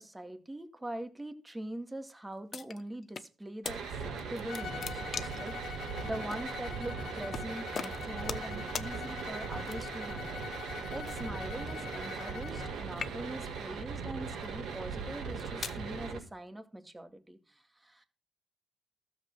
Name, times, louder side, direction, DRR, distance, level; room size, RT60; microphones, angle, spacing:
voice 1, 0.0-18.0, right 1 dB, 15° right, 8 dB, 2.1 m, -43 dB
sound 1, 2.5-3.3 3.6-3.8 4.2-5.5 6.3-6.4 7.3-7.5 7.7-8.5 8.7-8.9 9.6-10.1 11.0-12.7 12.9-13.5 14.2-14.4 15.1-15.8, left 6 dB, 45° left, 1.0 m, -41 dB
sound 2, 3.6-16.2, right 5 dB, 75° right, 4.8 m, -39 dB
Bowed string instrument, 4.5-12.8, left 8 dB, 65° left, 1.3 m, -44 dB
13.0 x 7.5 x 6.1 m, 0.35 s
cardioid pair, 90°, 0 cm